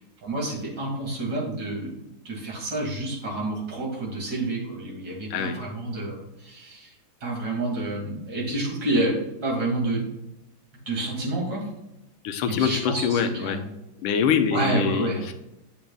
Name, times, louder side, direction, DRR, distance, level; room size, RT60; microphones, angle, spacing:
voice 1, 0.0-2.0 2.2-6.9 7.2-10.1 10.9-11.7 12.5-13.7 14.5-15.2, right 2 dB, 55° right, -3 dB, 3.0 m, -29 dB
voice 2, 12.2-13.6 14.0-15.3, left 7 dB, 85° left, 8 dB, 1.5 m, -24 dB
8.7 x 7.3 x 2.3 m, 0.93 s
omnidirectional pair, 2.3 m